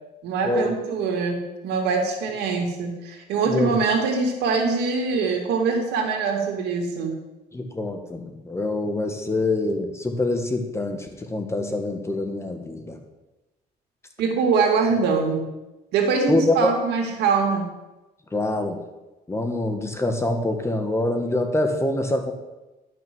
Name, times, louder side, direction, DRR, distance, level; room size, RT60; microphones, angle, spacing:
voice 1, 0.2-7.1 14.2-15.5 15.9-17.6, right 4 dB, 80° right, 2 dB, 2.4 m, -23 dB
voice 2, 3.5-3.8 7.5-13.0 16.3-16.7 18.3-18.8 19.3-22.3, left 2 dB, 15° left, 5 dB, 1.5 m, -25 dB
11.5 x 6.3 x 6.2 m, 1.0 s
cardioid pair, 110°, 17 cm